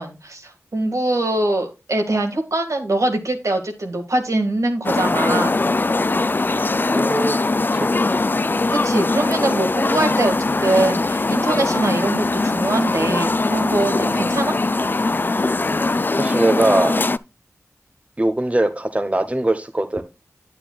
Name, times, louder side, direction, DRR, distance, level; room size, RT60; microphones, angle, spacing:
voice 1, 0.0-5.5 6.5-6.8 8.7-14.6, right 2 dB, 70° right, 1.9 m, -23 dB
sound 1, 4.8-17.2, left 3 dB, 35° left, 0.4 m, -21 dB
voice 2, 6.9-7.4 7.7-7.9 14.1-14.2 16.2-17.0 18.2-20.0, right 1 dB, 25° right, 1.0 m, -21 dB
9.2 x 8.8 x 2.3 m
cardioid pair, 40°, 6 cm